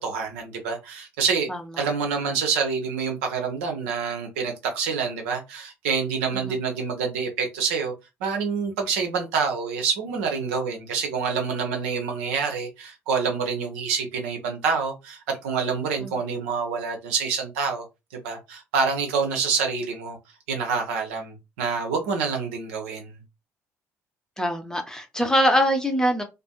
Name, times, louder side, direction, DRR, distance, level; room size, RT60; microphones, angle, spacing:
voice 1, 0.0-1.5 1.8-7.9 8.2-17.9 18.2-20.2 20.5-23.1, right 5 dB, 70° right, 0.6 m, -27 dB
voice 2, 1.5-1.9 6.3-6.5 16.0-16.2 24.4-26.2, equal, 10° left, 0.7 m, -23 dB
2.5 x 2.5 x 2.2 m
figure-of-eight pair, 50°, 8 cm